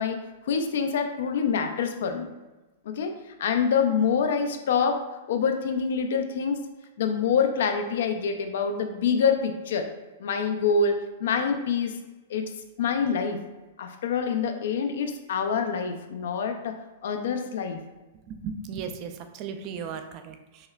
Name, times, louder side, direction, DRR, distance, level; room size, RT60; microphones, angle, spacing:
voice 1, 0.0-2.3 2.9-3.1 3.4-6.6 7.0-9.9 10.2-12.0 12.3-12.5 12.8-13.4 13.8-17.8, left 6 dB, 70° left, 6 dB, 0.4 m, -26 dB
voice 2, 18.3-20.7, right 6 dB, 35° right, 7 dB, 0.3 m, -36 dB
5.6 x 2.1 x 2.2 m, 1.1 s
hypercardioid pair, 150°, 0 cm